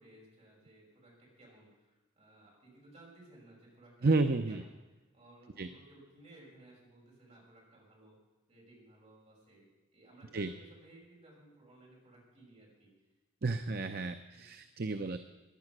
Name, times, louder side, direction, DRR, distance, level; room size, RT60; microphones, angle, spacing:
voice 1, 0.0-8.2 8.5-12.9 14.3-14.7, right 1 dB, 35° right, -3 dB, 5.9 m, -59 dB
voice 2, 4.0-4.6 5.6-5.7 10.3-10.5 13.4-15.2, right 3 dB, 50° right, 8 dB, 0.6 m, -31 dB
16.0 x 11.0 x 6.0 m, 1.2 s
head